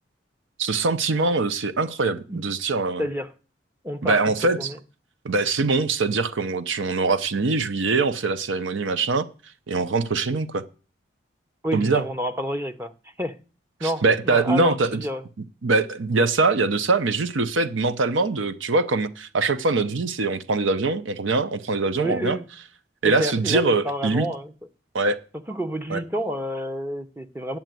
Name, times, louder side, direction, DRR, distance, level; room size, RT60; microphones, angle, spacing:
voice 1, 0.6-3.1 4.0-4.7 5.2-9.3 9.7-10.6 11.7-12.0 13.8-15.0 15.6-22.4 23.0-24.3 24.9-25.2 25.9-26.0, right 3 dB, 90° right, 0.8 m, -23 dB
voice 2, 3.0-3.3 3.8-4.2 4.6-4.8 11.6-12.9 13.2-13.3 13.8-15.2 22.0-22.4 23.0-24.5 25.5-27.6, equal, 10° right, 0.7 m, -29 dB
9.2 x 7.4 x 9.1 m
head